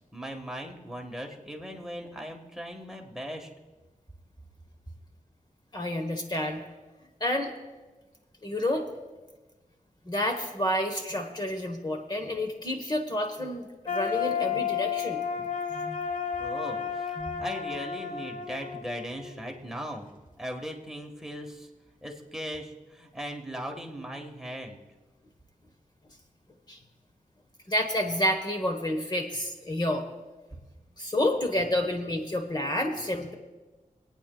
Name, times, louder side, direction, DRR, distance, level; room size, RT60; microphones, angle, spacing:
voice 1, 0.0-3.5 16.4-20.1 20.4-21.7 22.0-24.8, equal, 5° right, 2 dB, 1.5 m, -38 dB
voice 2, 5.7-6.6 7.2-7.5 8.4-8.9 10.1-15.2 15.7-16.0 17.2-17.4 26.7-26.8 27.7-30.0 31.0-33.3, left 1 dB, 30° left, 4 dB, 1.2 m, -29 dB
sound 1, 13.8-19.8, left 7 dB, 85° left, 1.3 m, -32 dB
26.5 x 9.1 x 2.3 m, 1.2 s
wide cardioid pair, 70°, 13 cm